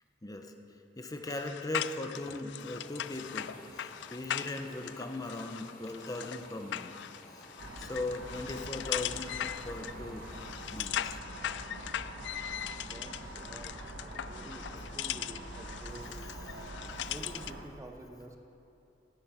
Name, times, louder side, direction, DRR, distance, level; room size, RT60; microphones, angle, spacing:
voice 1, 0.2-0.5 1.0-3.5 4.1-7.0 7.8-9.4 9.6-10.3 10.7-11.2 14.8-14.9, left 2 dB, 20° left, 5 dB, 0.9 m, -39 dB
sound 1, 1.2-17.6, left 11 dB, 70° left, 0.4 m, -39 dB
sound 2, 2.6-10.8, left 2 dB, 55° left, 2.0 m, -54 dB
sound 3, 7.6-17.6, right 1 dB, 90° right, 1.4 m, -45 dB
voice 2, 12.8-16.3 17.1-18.4, right 1 dB, 15° right, 4 dB, 0.7 m, -49 dB
17.0 x 8.4 x 5.9 m, 2.9 s
head